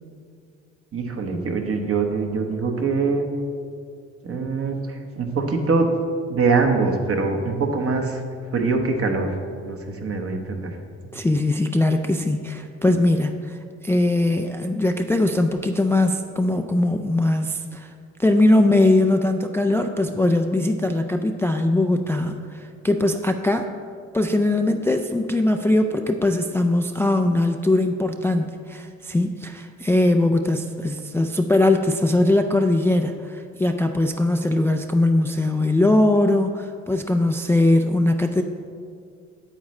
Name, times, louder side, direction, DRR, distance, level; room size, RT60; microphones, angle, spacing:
voice 1, 0.9-3.3 4.2-5.9 6.3-8.2 8.5-9.4 9.6-10.8, right 4 dB, 50° right, 4 dB, 1.1 m, -23 dB
voice 2, 11.1-17.9 18.2-23.7 24.1-38.4, left 2 dB, 10° left, 5 dB, 0.3 m, -21 dB
8.6 x 8.3 x 3.2 m, 2.2 s
cardioid pair, 90°, 30 cm